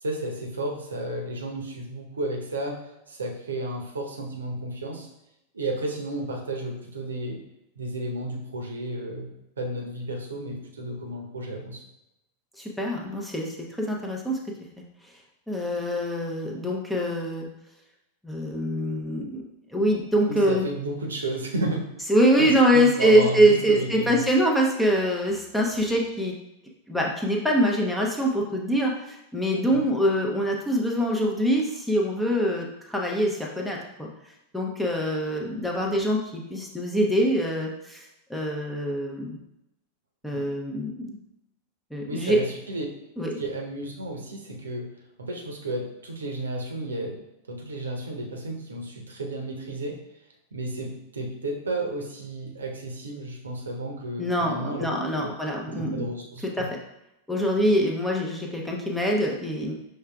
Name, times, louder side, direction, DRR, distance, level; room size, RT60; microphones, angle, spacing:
voice 1, 0.0-2.8 3.1-5.1 5.5-7.4 7.8-9.3 9.6-11.8 20.3-21.8 22.4-24.2 29.7-29.9 40.3-40.5 42.1-42.9 43.4-44.9 45.2-47.2 47.5-50.0 50.5-55.3 55.8-56.7, right 1 dB, 70° right, 0 dB, 0.8 m, -32 dB
voice 2, 12.6-14.4 15.5-17.5 18.2-19.4 19.7-20.6 22.1-26.3 26.9-34.1 34.5-39.4 40.2-41.2 41.9-42.4 43.2-43.4 54.2-56.1 56.6-56.7 57.3-59.7, equal, 5° left, -2 dB, 0.7 m, -24 dB
5.6 x 3.3 x 2.3 m, 0.87 s
figure-of-eight pair, 90°, 0 cm